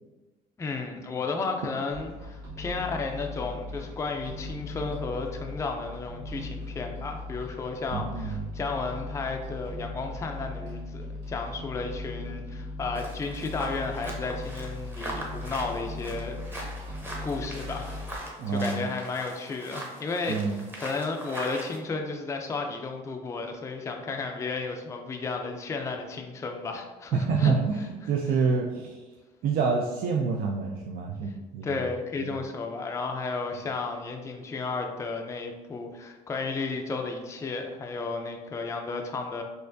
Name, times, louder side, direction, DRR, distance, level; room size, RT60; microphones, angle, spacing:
voice 1, 0.6-16.4 17.2-27.5 28.0-28.1 31.3-31.4 31.6-39.4, left 4 dB, 15° left, 3 dB, 0.4 m, -33 dB
sound 1, 1.9-18.2, left 2 dB, 85° right, 1.5 m, -38 dB
voice 2, 7.9-8.4 18.4-18.9 20.3-20.6 27.1-29.0 29.4-31.8 32.2-32.3, right 5 dB, 60° right, 0 dB, 0.4 m, -27 dB
sound 2, 13.0-21.8, right 1 dB, 10° right, 0.8 m, -40 dB
4.3 x 2.5 x 2.6 m, 1.2 s
cardioid pair, 110°, 17 cm